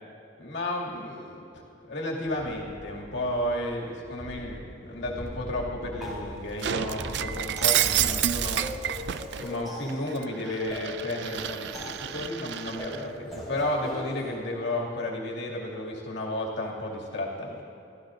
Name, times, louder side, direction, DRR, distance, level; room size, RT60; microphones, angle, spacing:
voice 1, 0.4-1.6 1.9-8.6 9.4-17.6, left 1 dB, 75° left, -2 dB, 2.4 m, -32 dB
sound 1, 2.3-3.7 4.0-9.3 9.6-9.7, equal, 20° right, 2.0 m, -41 dB
sound 2, 6.0-14.3, equal, ahead, 3.5 m, -41 dB
Shatter, 6.6-9.5 9.9-13.0, right 11 dB, 65° right, 0.4 m, -29 dB
24.5 x 14.5 x 2.6 m, 2.9 s
head